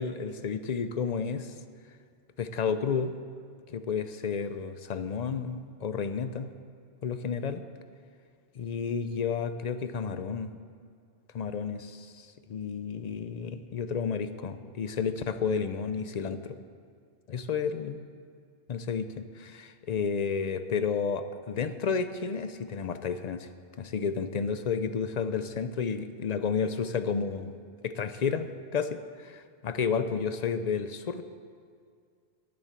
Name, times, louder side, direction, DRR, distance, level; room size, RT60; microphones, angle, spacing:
voice 1, 0.0-1.5 2.4-3.1 3.7-6.5 7.0-7.6 8.6-10.5 11.3-16.6 17.3-18.0 18.7-23.5 23.8-27.5 27.8-31.2, left 6 dB, 55° left, 11 dB, 0.5 m, -31 dB
10.5 x 7.3 x 8.1 m, 2.2 s
omnidirectional pair, 1.1 m